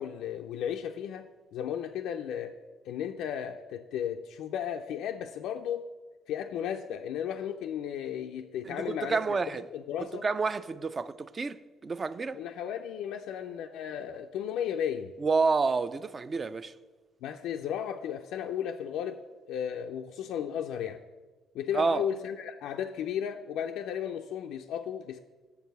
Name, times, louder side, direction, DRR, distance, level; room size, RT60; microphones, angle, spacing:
voice 1, 0.0-2.6 2.9-5.9 6.3-10.2 12.3-15.1 17.2-19.2 19.5-21.0 21.5-25.2, left 9 dB, 85° left, 0.3 m, -34 dB
voice 2, 8.6-9.7 10.2-12.4 15.2-16.7 21.7-22.0, right 4 dB, 30° right, 0.3 m, -29 dB
6.7 x 4.6 x 6.7 m
cardioid pair, 105°, 0 cm